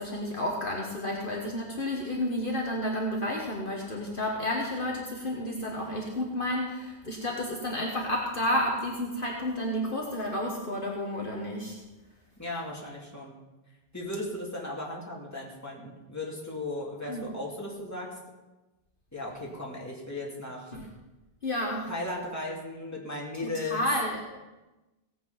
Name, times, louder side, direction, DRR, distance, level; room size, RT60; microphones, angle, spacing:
voice 1, 0.0-11.8 17.1-17.3 20.7-20.9 21.4-21.9 23.4-24.2, left 1 dB, 50° left, -1 dB, 1.6 m, -31 dB
voice 2, 12.4-13.4 13.9-18.2 19.1-20.7 21.9-23.8, left 2 dB, 15° left, -3 dB, 2.8 m, -36 dB
17.5 x 8.2 x 5.7 m, 1.1 s
omnidirectional pair, 1.2 m